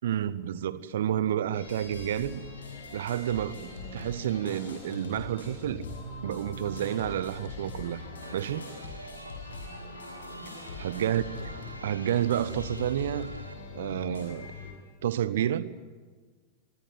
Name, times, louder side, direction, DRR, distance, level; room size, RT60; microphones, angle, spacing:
voice 1, 0.0-2.4 2.9-5.8 6.2-8.0 8.3-8.7 10.8-11.5 11.8-13.3 13.7-14.5 15.0-15.7, right 10 dB, 60° right, 1.2 m, -30 dB
sound 1, 1.5-14.7, left 3 dB, 70° left, 7.0 m, -42 dB
Chatter, 8.2-13.5, right 1 dB, 85° right, 1.7 m, -47 dB
25.0 x 24.0 x 9.5 m
figure-of-eight pair, 90°, 0 cm